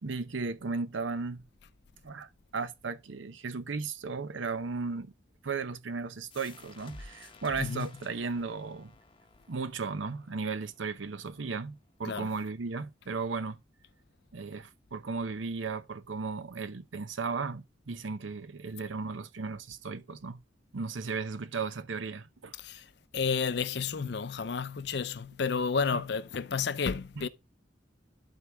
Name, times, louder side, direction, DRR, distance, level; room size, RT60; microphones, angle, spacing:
voice 1, 0.0-1.4 2.0-5.1 5.4-8.9 9.5-13.6 14.3-20.4 20.7-22.5 25.9-26.0 27.2-27.3, right 4 dB, 85° right, 0.7 m, -35 dB
sound 1, 6.3-11.7, left 2 dB, 25° left, 0.8 m, -53 dB
voice 2, 23.1-27.3, left 5 dB, 60° left, 0.5 m, -31 dB
11.5 x 4.7 x 3.4 m
head